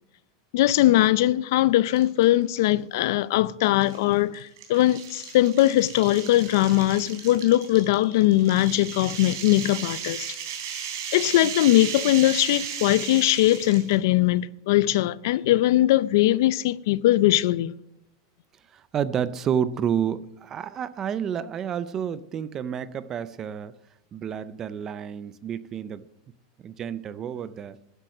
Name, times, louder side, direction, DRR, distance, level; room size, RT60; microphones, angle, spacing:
voice 1, 0.5-10.2 11.1-17.7, left 15 dB, 55° left, 0.5 m, -21 dB
sound 1, 1.9-2.3 2.7-2.8 3.8-13.9, right 8 dB, 65° right, 3.3 m, -35 dB
voice 2, 18.7-23.7 24.1-26.0 26.6-27.8, right 8 dB, 20° right, 0.4 m, -30 dB
12.5 x 10.0 x 6.6 m
supercardioid pair, 180°, 2 cm